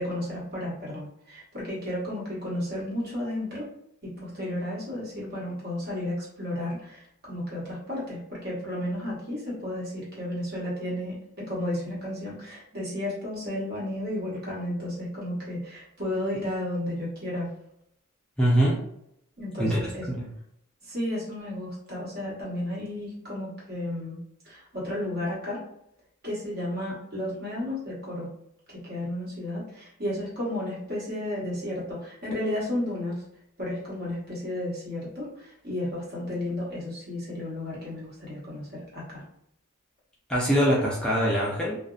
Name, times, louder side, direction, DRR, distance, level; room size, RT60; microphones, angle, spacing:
voice 1, 0.0-3.7 4.0-7.0 7.3-17.5 19.4-20.0 20.8-25.6 26.2-28.3 28.7-33.2 33.6-39.2, left 1 dB, 50° right, -6 dB, 1.2 m, -33 dB
voice 2, 18.4-18.8 19.6-20.3 40.3-41.8, equal, 5° left, -6 dB, 0.4 m, -23 dB
2.5 x 2.1 x 2.3 m, 0.76 s
head